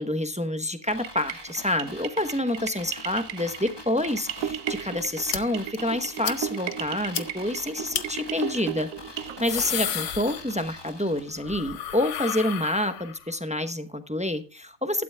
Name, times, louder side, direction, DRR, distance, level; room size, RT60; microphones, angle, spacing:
voice 1, 0.0-8.9 9.2-15.0, left 1 dB, 5° right, 9 dB, 0.8 m, -28 dB
sound 1, 0.9-11.8 12.1-12.2, left 2 dB, 20° left, 1.2 m, -44 dB
sound 2, 1.0-9.4, right 9 dB, 80° right, 1.1 m, -35 dB
sound 3, 5.3-5.4 5.7-5.8 6.2-6.4 6.7-6.8 7.1-7.2 7.9-8.0 9.2-10.8 11.1-13.3, left 9 dB, 60° left, 1.1 m, -32 dB
16.0 x 12.5 x 2.2 m, 0.33 s
omnidirectional pair, 1.5 m